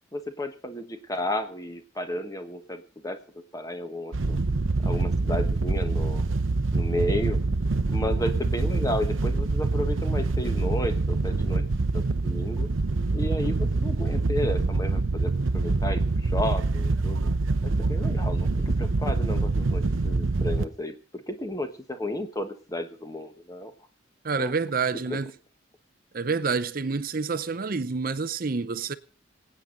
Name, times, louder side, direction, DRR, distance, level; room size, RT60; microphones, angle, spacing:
voice 1, 0.1-3.2 3.5-4.4 4.8-6.2 6.7-7.4 7.9-11.6 11.9-12.7 13.1-17.3 17.6-23.7 24.4-24.5 24.9-25.2, left 1 dB, 20° left, 1.3 m, -33 dB
Wind / Boat Water vehicle, 4.1-20.6, right 3 dB, 90° right, 0.8 m, -25 dB
voice 2, 24.2-25.3 26.1-28.9, right 4 dB, 45° right, 0.6 m, -28 dB
24.5 x 8.9 x 3.9 m
head